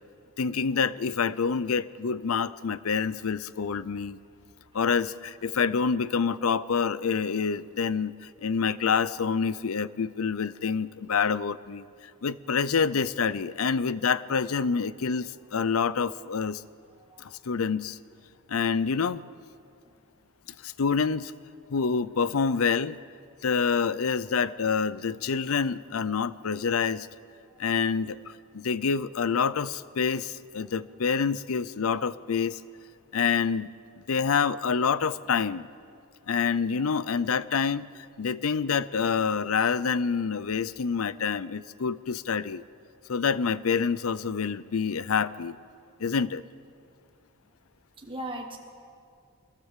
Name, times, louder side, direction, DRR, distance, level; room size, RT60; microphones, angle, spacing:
voice 1, 0.4-4.2 4.7-11.9 12.2-16.6 17.2-18.0 18.5-19.2 20.6-21.3 21.7-23.0 23.4-27.1 27.6-32.6 33.1-33.7 34.1-35.7 36.3-42.6 43.1-45.6 46.0-46.4, left 6 dB, 75° left, 17 dB, 0.6 m, -27 dB
voice 2, 48.0-48.6, right 1 dB, 25° right, 1 dB, 1.2 m, -39 dB
21.5 x 16.5 x 7.4 m, 2.3 s
head